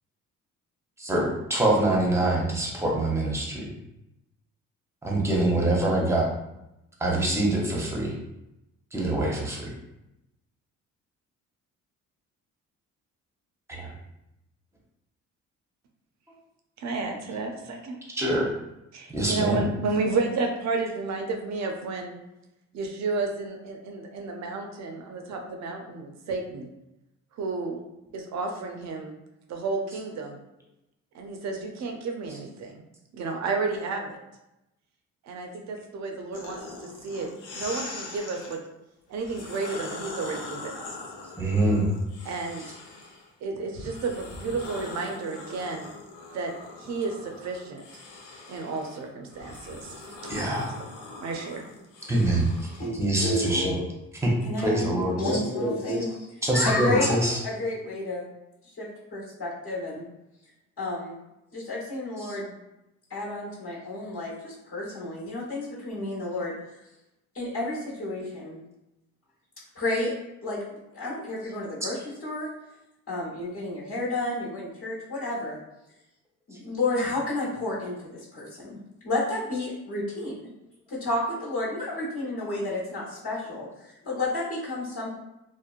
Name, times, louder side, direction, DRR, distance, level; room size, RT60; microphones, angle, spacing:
voice 1, 1.0-3.7 5.0-6.3 7.0-8.1 8.9-9.7 13.7-13.9 18.1-18.5 19.1-19.6 41.4-41.8 50.3-50.8 52.1-52.5 53.0-53.7 54.2-54.3 54.6-55.2 56.4-57.4 62.2-62.3, right 1 dB, 10° right, -3 dB, 0.7 m, -24 dB
voice 2, 16.8-18.0 18.9-22.2 22.7-26.7 27.3-27.8 28.1-29.1 29.5-30.4 31.1-32.8 33.1-34.2 35.2-38.6 39.1-41.0 42.2-42.8 43.4-45.9 46.3-46.5 46.8-47.8 48.5-49.9 51.2-51.6, right 3 dB, 65° right, 3 dB, 0.5 m, -32 dB
sound 1, 36.3-38.6 39.2-43.3 43.7-52.9, left 3 dB, 90° left, 0.5 m, -41 dB
voice 3, 52.7-54.0 54.4-58.3 58.8-60.1 60.8-61.2 61.5-62.5 63.1-66.6 67.3-68.6 69.7-70.1 70.4-72.5 73.1-75.6 76.5-78.8 79.0-80.5 80.9-85.1, left 2 dB, 50° left, -7 dB, 1.0 m, -31 dB
2.9 x 2.0 x 2.4 m, 0.91 s
cardioid pair, 90°, 30 cm